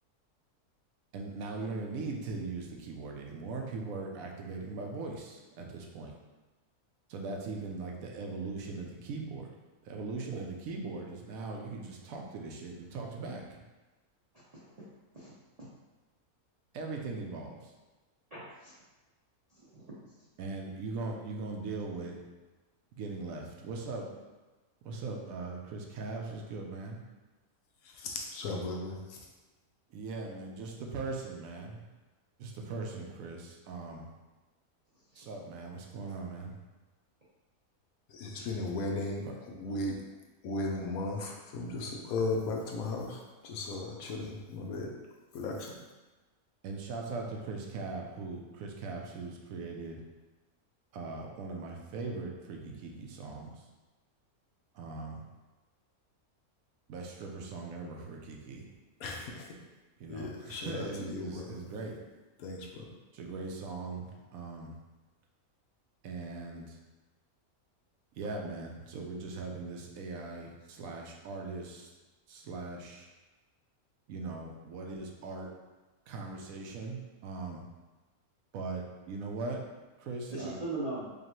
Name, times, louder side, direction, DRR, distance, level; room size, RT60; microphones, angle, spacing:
voice 1, 1.1-6.1 7.1-9.5 9.8-13.6 16.7-17.7 20.4-22.2 22.9-24.1 24.8-27.0 29.9-31.8 32.4-34.1 35.2-36.5 46.6-50.0 50.9-53.5 54.7-55.2 56.9-58.6 60.0-62.0 63.1-64.7 66.0-66.8 68.2-71.9 72.3-73.1 74.1-75.5 76.1-77.6 78.5-79.6 80.0-80.6, right 3 dB, 75° right, 1 dB, 1.0 m, -40 dB
voice 2, 14.3-14.8 15.1-15.3 18.3-18.7 19.5-19.9 35.1-35.2 80.3-81.1, right 2 dB, 45° right, -9 dB, 0.5 m, -40 dB
voice 3, 27.8-29.3 38.1-39.2 39.6-40.0 40.4-44.9 45.3-45.7 59.0-59.5 60.1-61.5 62.4-62.9, left 2 dB, 75° left, 0 dB, 1.1 m, -36 dB
5.0 x 2.4 x 3.0 m, 1.2 s
omnidirectional pair, 1.6 m